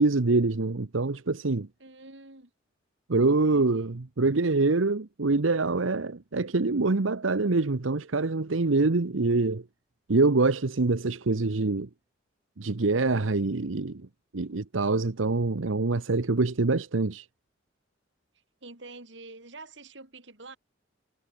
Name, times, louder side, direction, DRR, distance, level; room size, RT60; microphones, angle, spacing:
voice 1, 0.0-1.7 3.1-9.6 10.1-11.9 12.6-14.0 14.3-17.3, right 3 dB, 90° right, 1.0 m, -25 dB
voice 2, 1.8-2.5 3.3-4.0 18.6-20.6, right 3 dB, 65° right, 4.0 m, -47 dB
head